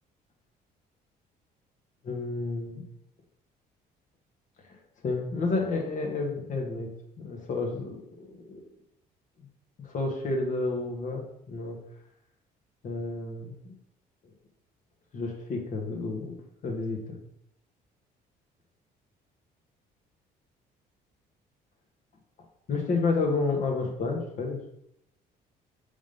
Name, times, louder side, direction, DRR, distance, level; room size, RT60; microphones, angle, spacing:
voice 1, 2.0-2.8 5.0-6.9 7.2-8.6 9.8-11.8 12.8-13.7 15.1-16.3 16.6-17.2 22.7-24.6, left 3 dB, 50° left, 1 dB, 1.5 m, -30 dB
5.0 x 3.6 x 5.3 m, 0.77 s
cardioid pair, 110°, 17 cm